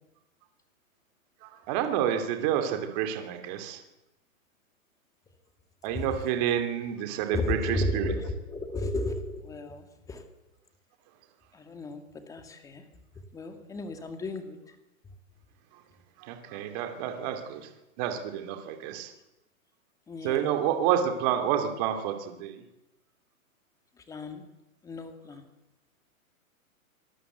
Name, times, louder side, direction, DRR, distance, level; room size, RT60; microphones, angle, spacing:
voice 1, 1.4-3.8 5.8-8.1 15.7-15.8 16.2-17.7 18.0-19.1 20.2-22.6, right 10 dB, 30° right, 6 dB, 2.7 m, -29 dB
voice 2, 7.3-10.3 11.5-12.8 13.3-14.8 20.1-20.5 24.0-24.5 24.8-25.5, left 2 dB, 10° left, 7 dB, 2.1 m, -34 dB
25.5 x 19.0 x 8.1 m, 0.94 s
hypercardioid pair, 165°, 42 cm